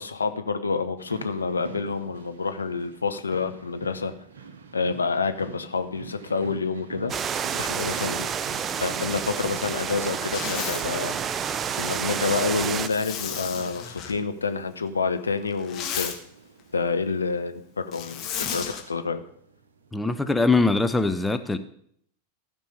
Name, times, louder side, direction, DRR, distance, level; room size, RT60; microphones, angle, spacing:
voice 1, 0.0-4.1 4.7-7.1 7.6-8.3 8.8-11.1 11.8-16.1 16.7-19.2, left 4 dB, 75° left, 9 dB, 0.8 m, -28 dB
sound 1, 1.0-20.0, right 6 dB, 65° right, 1.0 m, -46 dB
sound 2, 7.1-12.9, right 7 dB, 25° right, 0.5 m, -29 dB
Zipper (clothing), 10.2-10.9 12.8-14.1 15.5-16.2 17.9-18.8, left 8 dB, 35° left, 1.6 m, -33 dB
voice 2, 19.9-21.6, left 3 dB, 5° left, 9 dB, 0.7 m, -22 dB
14.5 x 5.4 x 6.7 m, 0.67 s
figure-of-eight pair, 90°, 0 cm